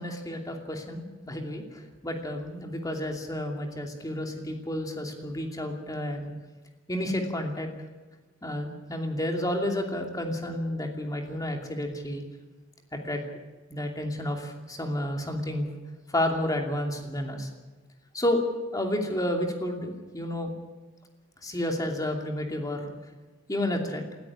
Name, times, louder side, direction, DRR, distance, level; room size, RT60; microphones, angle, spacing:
voice 1, 0.0-6.3 6.9-7.7 8.4-12.2 12.9-13.2 13.7-15.7 16.1-17.5 18.1-18.4 18.7-20.5 21.4-22.9 23.5-24.0, left 1 dB, 20° left, 2 dB, 2.7 m, -31 dB
19.5 x 14.0 x 9.9 m, 1.2 s
head